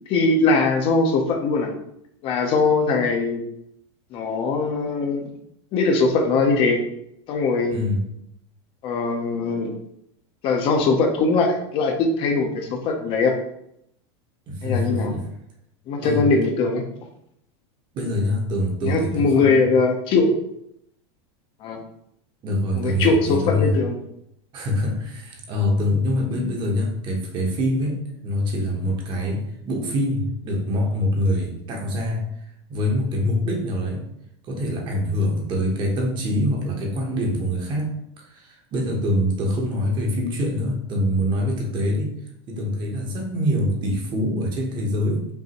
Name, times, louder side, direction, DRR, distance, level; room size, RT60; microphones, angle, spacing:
voice 1, 0.1-1.7 2.2-3.4 4.1-5.3 5.7-6.8 7.3-7.8 8.8-9.7 10.4-13.4 14.6-15.1 15.9-16.8 18.8-20.4 21.6-21.8 22.7-23.9, left 3 dB, 40° left, 2 dB, 0.7 m, -21 dB
voice 2, 7.7-8.1 14.5-15.2 16.0-16.2 17.9-19.6 22.4-23.7 24.5-32.2 32.7-34.0 34.4-42.1 42.5-45.3, left 1 dB, 35° right, 1 dB, 1.1 m, -24 dB
5.3 x 2.7 x 3.0 m, 0.76 s
supercardioid pair, 140°, 14 cm